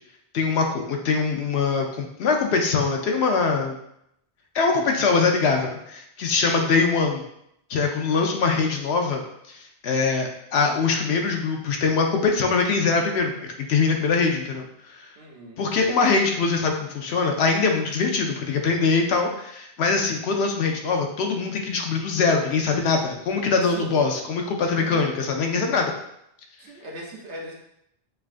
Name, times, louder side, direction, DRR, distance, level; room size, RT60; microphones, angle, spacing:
voice 1, 0.3-3.8 4.5-7.2 7.7-9.6 9.8-14.7 15.0-15.1 15.6-25.9, left 4 dB, 75° left, 3 dB, 0.9 m, -23 dB
voice 2, 6.4-6.8 15.2-15.7 23.7-24.1 24.8-25.1 26.6-27.5, right 1 dB, 85° right, -1 dB, 1.1 m, -39 dB
5.4 x 2.5 x 2.5 m, 0.76 s
omnidirectional pair, 1.1 m